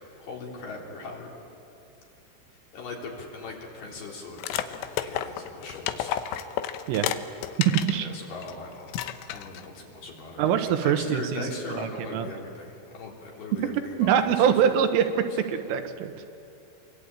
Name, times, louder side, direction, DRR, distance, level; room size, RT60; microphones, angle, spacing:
voice 1, 0.2-1.3 2.7-6.4 8.0-9.0 9.3-14.6, left 3 dB, 55° left, -1 dB, 5.2 m, -40 dB
sound 1, 4.4-8.0 8.4-8.5 8.9-9.7, left 11 dB, 90° left, 3.4 m, -32 dB
voice 2, 7.6-8.1 10.4-12.3 14.0-16.1, right 8 dB, 80° right, 7 dB, 3.8 m, -24 dB
28.0 x 23.0 x 8.9 m, 2.8 s
omnidirectional pair, 5.7 m